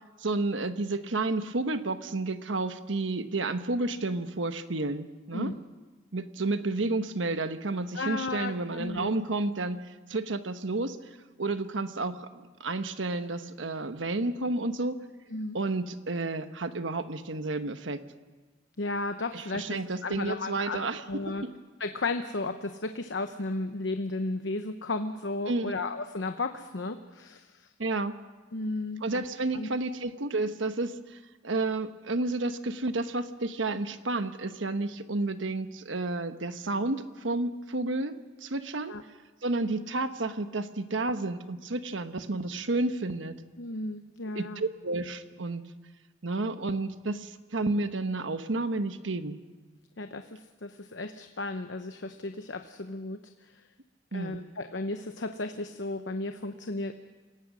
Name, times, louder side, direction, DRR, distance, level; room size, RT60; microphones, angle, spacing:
voice 1, 0.2-5.5 6.1-9.8 10.1-11.0 11.4-14.9 15.5-18.0 19.3-21.0 21.4-21.5 25.5-25.7 27.8-28.2 29.0-31.2 31.4-38.1 38.4-38.9 39.4-43.3 44.3-45.6 46.2-49.4 54.1-54.4, right 2 dB, 90° right, 10 dB, 1.1 m, -31 dB
voice 2, 7.9-9.1 15.3-15.6 18.8-20.8 21.1-21.4 21.8-27.7 28.5-29.2 29.5-29.7 38.9-39.0 43.6-44.6 50.0-53.5 54.1-56.9, left 2 dB, 75° left, 8 dB, 0.9 m, -34 dB
27.5 x 17.5 x 6.2 m, 1.3 s
head